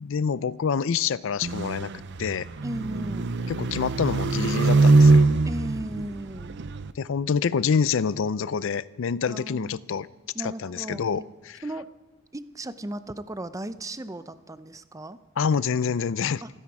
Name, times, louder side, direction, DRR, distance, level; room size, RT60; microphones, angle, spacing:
voice 1, 0.0-1.9 2.2-2.5 3.5-5.2 7.0-10.1 10.4-11.6 15.4-16.4, left 6 dB, 70° left, 18 dB, 0.4 m, -26 dB
sound 1, 1.4-6.9, right 3 dB, 60° right, 0.6 m, -22 dB
voice 2, 2.6-3.3 5.4-6.5 9.2-9.8 10.3-11.3 11.6-11.9 12.3-15.2 16.4-16.5, right 1 dB, 15° right, 13 dB, 0.6 m, -36 dB
27.5 x 10.0 x 4.8 m, 1.1 s
head